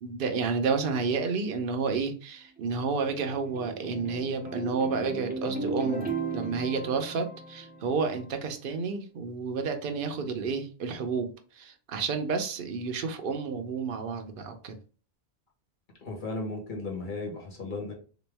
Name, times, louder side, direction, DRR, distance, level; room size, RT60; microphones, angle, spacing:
voice 1, 0.0-11.3 11.6-14.8, right 5 dB, 60° right, 6 dB, 0.8 m, -30 dB
sound 1, 2.6-8.2, right 3 dB, 10° right, 0.6 m, -36 dB
voice 2, 16.0-17.9, left 2 dB, 50° left, 0 dB, 1.4 m, -35 dB
3.5 x 3.0 x 3.4 m, 0.38 s
omnidirectional pair, 1.1 m